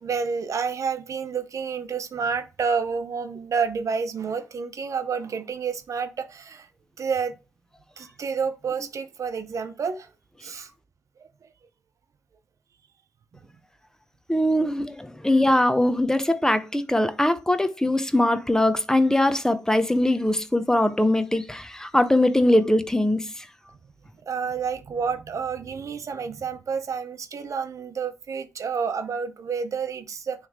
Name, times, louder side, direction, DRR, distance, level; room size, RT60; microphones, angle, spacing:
voice 1, 0.0-6.7 7.0-7.3 8.0-10.1 10.4-10.7 11.2-11.5 24.3-30.5, right 5 dB, 75° right, 0.7 m, -29 dB
voice 2, 14.3-23.5, left 1 dB, 10° left, 0.7 m, -21 dB
9.6 x 3.2 x 3.6 m
cardioid pair, 80°, 6 cm